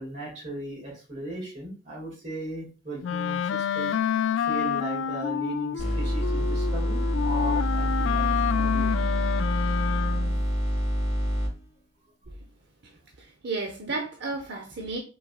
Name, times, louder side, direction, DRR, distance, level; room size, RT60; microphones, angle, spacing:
voice 1, 0.0-3.4 3.7-3.9 4.5-9.1, right 2 dB, 40° right, -4 dB, 2.1 m, -37 dB
Wind instrument woodwind instrument, 3.0-10.5, left 8 dB, 80° left, 0.3 m, -28 dB
sound 1, 5.8-11.5, equal, 35° left, 2.2 m, -26 dB
voice 2, 13.2-15.0, right 3 dB, 65° right, 2 dB, 0.8 m, -33 dB
5.4 x 4.0 x 2.3 m, 0.34 s
head